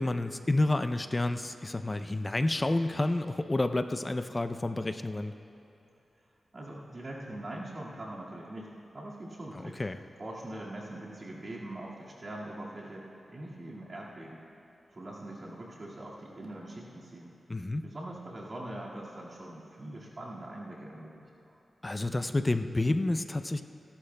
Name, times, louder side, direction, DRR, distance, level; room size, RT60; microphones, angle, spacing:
voice 1, 0.0-5.3 9.6-10.0 17.5-17.8 21.8-23.6, left 2 dB, 25° left, 9 dB, 0.5 m, -29 dB
voice 2, 6.5-9.8 10.2-14.4 14.9-17.4 17.8-21.3, right 1 dB, 45° right, -5 dB, 1.9 m, -42 dB
29.5 x 11.5 x 2.2 m, 3.0 s
wide cardioid pair, 85°, 0 cm